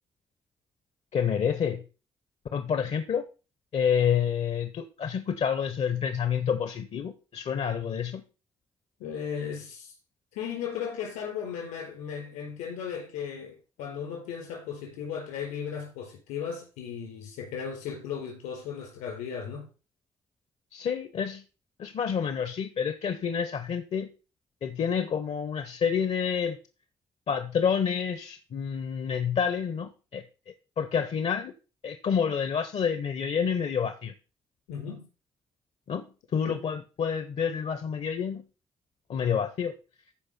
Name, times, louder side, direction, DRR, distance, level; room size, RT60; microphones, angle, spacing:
voice 1, 1.1-1.8 2.5-3.2 3.7-8.2 20.7-21.4 21.8-24.1 24.6-26.6 27.3-30.2 30.8-31.5 31.8-34.1 35.9-36.1 36.3-38.4 39.1-39.7, left 7 dB, 60° left, 0.9 m, -28 dB
voice 2, 9.0-9.9 10.3-19.7 34.7-35.0 36.4-36.5, left 7 dB, 85° left, 4.5 m, -36 dB
14.5 x 5.0 x 4.3 m
hypercardioid pair, 40°, 12 cm